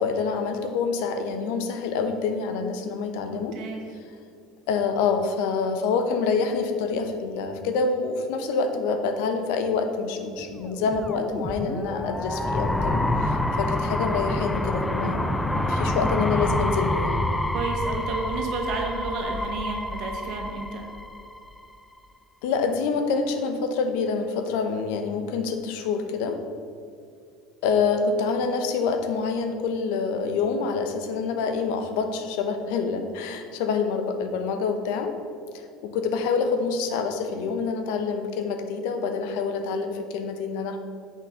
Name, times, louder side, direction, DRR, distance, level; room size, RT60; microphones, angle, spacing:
voice 1, 0.0-3.5 4.7-17.3 22.4-26.4 27.6-35.1 35.5-40.8, left 5 dB, 75° left, 7 dB, 0.9 m, -27 dB
voice 2, 3.3-3.8 17.5-20.8, right 4 dB, 60° right, 2 dB, 1.6 m, -31 dB
sound 1, 10.7-21.6, left 1 dB, 10° left, 0.5 m, -27 dB
6.8 x 5.9 x 5.8 m, 2.3 s
supercardioid pair, 105°, 0 cm